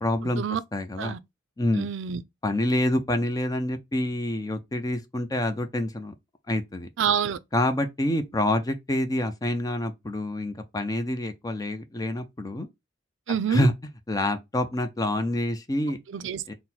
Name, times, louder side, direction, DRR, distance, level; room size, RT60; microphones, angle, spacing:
voice 1, 0.0-0.4 0.7-1.1 1.6-1.9 2.4-6.1 6.5-6.9 7.5-12.7 13.5-13.7 14.1-16.0 16.5-16.6, left 1 dB, 20° left, 0.5 m, -27 dB
voice 2, 1.8-2.2 7.0-7.4 13.3-13.7 16.1-16.4, right 7 dB, 70° right, 0.4 m, -27 dB
3.8 x 2.1 x 4.2 m
head